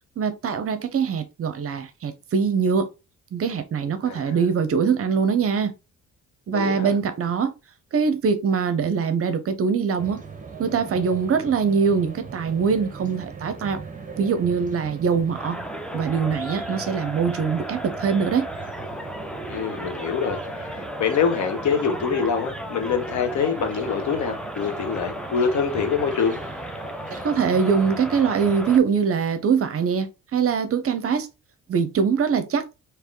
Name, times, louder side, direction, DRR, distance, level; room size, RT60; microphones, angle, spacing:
voice 1, 0.2-2.9 3.3-5.7 6.5-7.5 7.9-10.2 10.6-13.8 14.2-15.6 15.9-18.5 27.2-31.3 31.7-32.7, right 6 dB, 50° right, 0.7 m, -23 dB
voice 2, 4.1-4.4 6.5-6.9 19.5-26.4, left 6 dB, 70° left, 1.1 m, -25 dB
sound 1, 10.0-28.8, right 5 dB, 25° right, 1.1 m, -40 dB
sound 2, 15.3-28.8, equal, 5° left, 0.5 m, -35 dB
3.3 x 2.9 x 3.7 m
cardioid pair, 90°, 30 cm